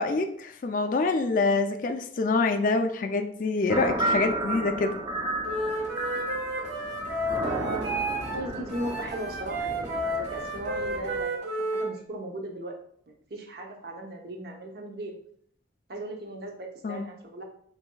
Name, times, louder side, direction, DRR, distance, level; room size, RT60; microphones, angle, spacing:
voice 1, 0.0-5.0 16.8-17.0, left 3 dB, 45° left, 7 dB, 0.3 m, -26 dB
sound 1, 3.7-11.2, right 1 dB, 25° right, 0.5 m, -33 dB
Wind instrument woodwind instrument, 5.4-8.4 8.7-11.9, right 1 dB, 85° right, 1.5 m, -31 dB
voice 2, 7.4-12.8 13.3-15.2 15.9-17.4, right 1 dB, 60° right, 1 dB, 0.8 m, -37 dB
7.6 x 2.7 x 2.2 m, 0.66 s
head